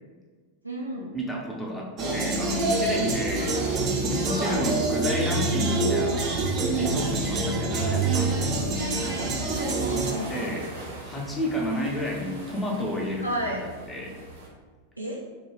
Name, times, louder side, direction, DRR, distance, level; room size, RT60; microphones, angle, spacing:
voice 1, 0.6-1.1 3.3-3.7 4.3-4.7 8.7-10.5 13.2-13.6 15.0-15.2, right 1 dB, 85° right, -3 dB, 0.3 m, -33 dB
voice 2, 1.1-8.6 10.3-10.6 11.0-13.6 13.9-14.1, equal, 10° left, -1 dB, 0.5 m, -31 dB
sound 1, 2.0-10.1, right 2 dB, 35° right, 0.5 m, -26 dB
sound 2, 2.6-14.5, right 2 dB, 65° right, 0.8 m, -44 dB
sound 3, 4.5-10.8, left 4 dB, 75° left, 0.6 m, -44 dB
2.3 x 2.1 x 3.1 m, 1.4 s
figure-of-eight pair, 90°, 0 cm